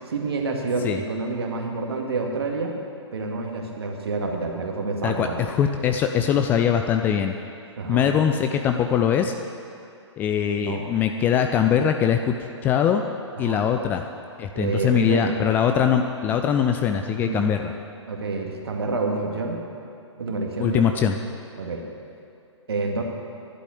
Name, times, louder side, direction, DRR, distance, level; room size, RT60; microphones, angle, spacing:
voice 1, 0.1-2.7 3.1-5.4 7.8-8.1 10.7-10.8 13.4-13.6 14.5-15.3 17.2-17.5 18.1-19.6 20.2-20.9 21.6-21.8 22.7-23.0, right 3 dB, 55° right, 1 dB, 2.1 m, -28 dB
voice 2, 5.0-7.3 7.9-9.3 10.2-12.3 12.6-13.0 13.4-14.0 14.4-17.7 20.6-21.2, left 8 dB, 10° left, 5 dB, 0.4 m, -22 dB
11.5 x 8.2 x 10.0 m, 2.5 s
figure-of-eight pair, 125°, 16 cm